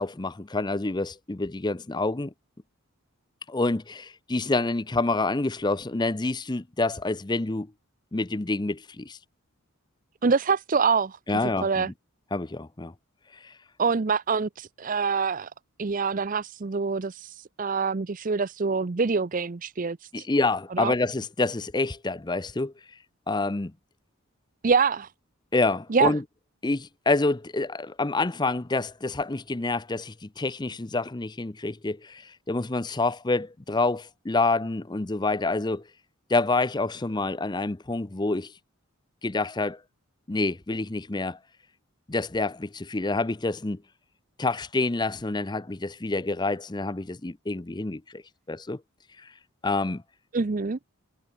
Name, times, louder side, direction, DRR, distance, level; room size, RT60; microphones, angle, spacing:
voice 1, 0.0-2.3 3.5-7.7 8.1-9.2 11.3-11.9 12.3-12.9 13.4-13.5 20.1-22.7 23.3-23.7 25.5-26.2 26.6-35.8 36.3-38.5 39.2-39.8 40.3-41.4 42.1-43.8 44.4-48.2 48.5-48.8 49.6-50.0, left 3 dB, 20° left, 0.6 m, -27 dB
voice 2, 10.2-11.2 11.6-11.9 13.8-15.5 15.8-20.2 20.8-20.9 24.6-25.1 25.9-26.1 50.3-50.8, right 5 dB, 40° right, 0.5 m, -25 dB
head